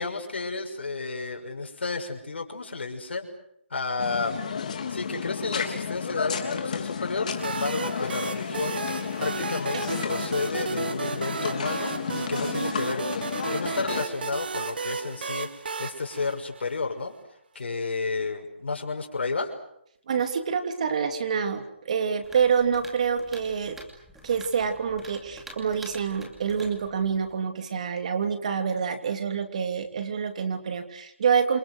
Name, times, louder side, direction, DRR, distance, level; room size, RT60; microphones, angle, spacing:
voice 1, 0.0-3.3 3.7-4.4 4.9-8.8 9.2-17.1 17.5-19.6, left 4 dB, 65° left, 2 dB, 5.9 m, -31 dB
sound 1, 4.0-14.0, left 6 dB, 40° left, 3.4 m, -32 dB
sound 2, 7.4-17.0, right 5 dB, 50° right, 1.6 m, -33 dB
voice 2, 20.1-23.8 24.2-31.6, right 6 dB, 35° right, 7 dB, 3.1 m, -27 dB
sound 3, 22.2-27.4, right 1 dB, 5° right, 2.6 m, -48 dB
28.5 x 28.0 x 6.4 m, 0.75 s
hypercardioid pair, 170°, 6 cm